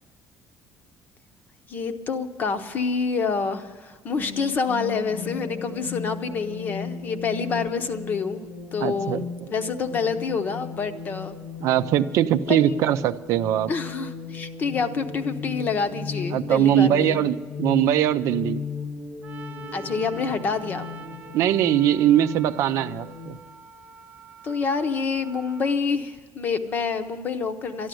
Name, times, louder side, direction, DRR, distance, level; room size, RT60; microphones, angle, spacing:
voice 1, 1.7-8.4 8.7-11.4 12.5-12.8 13.7-17.2 19.7-20.9 24.4-27.9, left 5 dB, 30° left, 9 dB, 0.8 m, -27 dB
sound 1, 4.2-23.4, left 5 dB, 85° left, 2.6 m, -36 dB
voice 2, 8.8-9.2 11.6-13.7 16.3-18.6 21.3-23.4, right 11 dB, 60° right, 11 dB, 0.5 m, -21 dB
Trumpet, 19.2-25.8, right 6 dB, 30° right, 0.9 m, -45 dB
12.5 x 12.0 x 7.7 m, 1.4 s
cardioid pair, 180°, 6 cm